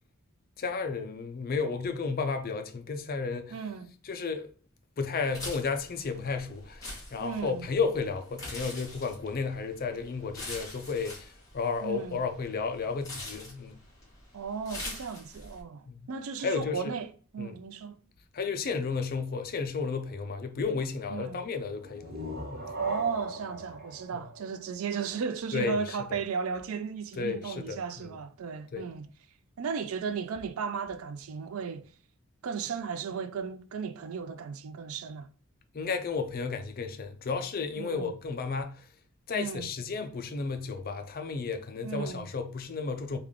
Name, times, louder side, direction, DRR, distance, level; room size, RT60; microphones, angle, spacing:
voice 1, 0.6-3.6 4.0-4.5 5.0-13.8 16.4-16.9 17.4-17.6 18.3-22.2 22.5-22.7 25.5-26.0 27.2-28.1 28.7-28.9 35.7-38.9 39.3-43.2, left 4 dB, 45° left, 0.4 m, -33 dB
voice 2, 3.5-3.9 7.2-7.7 11.8-12.2 14.3-18.0 21.1-21.4 22.8-29.1 29.6-31.9 32.4-35.3 37.8-38.1 39.3-39.7 41.8-42.3, right 6 dB, 70° right, 0.4 m, -35 dB
sound 1, 5.3-15.6, left 2 dB, 15° left, 1.4 m, -44 dB
sound 2, 21.8-25.3, right 2 dB, 45° right, 1.0 m, -38 dB
3.4 x 2.4 x 3.5 m
head